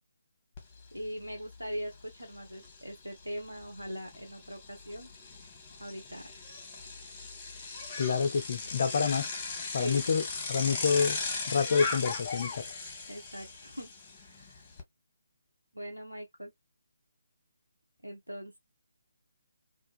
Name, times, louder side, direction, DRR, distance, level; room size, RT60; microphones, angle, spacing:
Bicycle, 0.6-0.7 1.0-14.8, left 4 dB, 20° left, 0.8 m, -39 dB
voice 1, 0.9-5.1 5.8-6.3 9.7-10.0 13.1-14.6 15.7-16.5 18.0-18.6, equal, 85° right, 0.8 m, -41 dB
voice 2, 8.0-9.3 9.7-10.2 10.5-11.2 11.5-12.6, left 5 dB, 45° left, 0.3 m, -27 dB
2.5 x 2.3 x 2.3 m
figure-of-eight pair, 145°, 0 cm